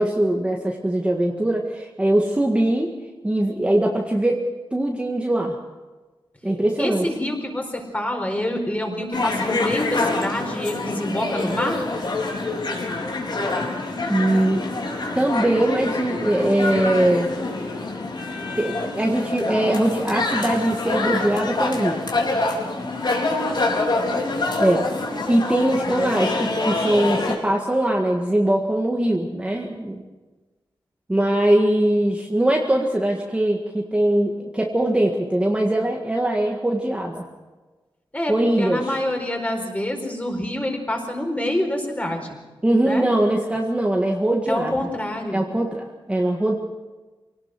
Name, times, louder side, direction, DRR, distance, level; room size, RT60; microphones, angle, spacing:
voice 1, 0.0-2.9 3.2-4.4 4.7-5.6 6.4-7.1 14.1-14.6 15.1-17.3 18.6-22.0 24.6-24.9 25.3-30.0 31.1-37.3 38.3-38.9 42.6-44.8 45.3-46.5, right 1 dB, 15° right, 0 dB, 1.8 m, -21 dB
voice 2, 6.5-11.9 23.3-24.5 38.1-38.3 38.6-42.3 42.8-43.1 44.5-45.5, left 1 dB, 15° left, 2 dB, 4.5 m, -27 dB
sound 1, 9.1-27.4, left 3 dB, 55° left, 4.2 m, -26 dB
25.0 x 18.0 x 6.2 m, 1.2 s
wide cardioid pair, 140°, 9 cm